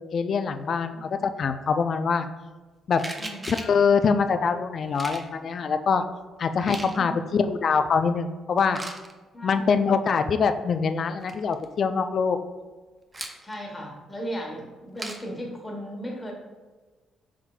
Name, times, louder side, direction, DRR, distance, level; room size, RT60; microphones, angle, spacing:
voice 1, 0.0-2.3 2.9-3.0 3.5-6.0 6.4-8.8 9.4-12.4, left 5 dB, 55° left, 9 dB, 0.3 m, -24 dB
sound 1, 3.0-3.8 4.9-5.3 6.4-7.0 8.7-9.1 10.9-11.0 11.2-11.7 13.1-13.5 15.0-15.3, right 2 dB, 20° right, 0.5 m, -37 dB
voice 2, 3.2-3.5 7.0-7.3 9.3-10.2 13.4-16.3, equal, 15° left, -1 dB, 1.2 m, -36 dB
5.8 x 3.7 x 2.3 m, 1.3 s
cardioid pair, 90°, 0 cm